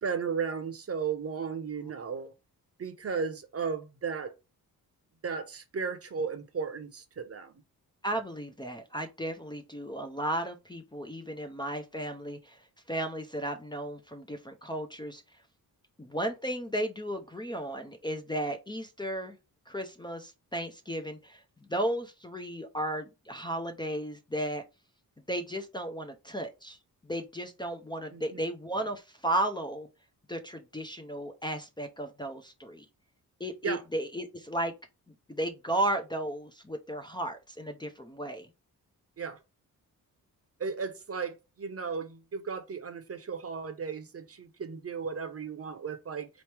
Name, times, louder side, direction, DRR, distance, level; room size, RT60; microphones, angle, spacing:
voice 1, 0.0-2.3 2.8-4.3 5.2-7.5 28.1-28.4 33.6-33.8 39.2-39.4 40.6-46.3, right 5 dB, 40° right, 0.8 m, -35 dB
voice 2, 8.0-15.2 16.0-19.4 19.7-24.6 25.3-26.8 27.0-29.9 30.3-32.9 33.4-34.7 35.1-38.5, right 1 dB, 15° left, 0.6 m, -34 dB
4.1 x 3.1 x 3.3 m
cardioid pair, 110°, 36 cm